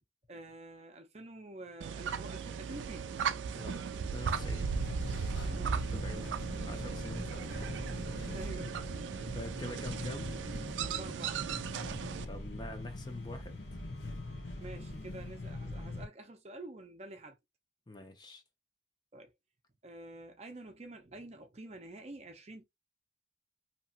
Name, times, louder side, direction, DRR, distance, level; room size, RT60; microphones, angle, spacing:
voice 1, 0.3-3.1 5.4-6.4 8.3-8.9 10.8-11.5 14.6-17.4 19.1-19.3 19.8-22.6, right 2 dB, 35° right, 0.5 m, -48 dB
sound 1, 1.8-12.3, right 6 dB, 90° right, 0.4 m, -37 dB
voice 2, 3.6-4.7 5.9-7.8 8.2-8.4 9.3-10.3 12.3-13.6 17.9-18.4, left 1 dB, 25° left, 0.6 m, -46 dB
sound 2, 4.2-16.1, left 1 dB, 70° left, 0.9 m, -42 dB
2.8 x 2.8 x 2.4 m
head